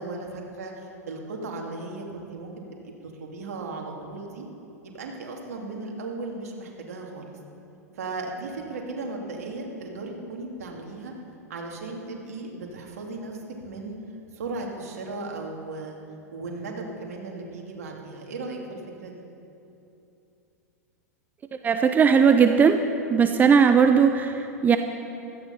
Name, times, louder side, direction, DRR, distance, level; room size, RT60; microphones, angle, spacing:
voice 1, 0.0-2.9 3.2-4.5 4.8-7.3 7.9-11.1 11.5-14.0 14.3-16.0 16.3-19.2, right 3 dB, 65° right, 0 dB, 2.6 m, -36 dB
voice 2, 21.6-22.8 23.1-24.8, right 6 dB, 20° right, 8 dB, 0.7 m, -18 dB
16.5 x 13.0 x 5.7 m, 2.8 s
figure-of-eight pair, 95°, 9 cm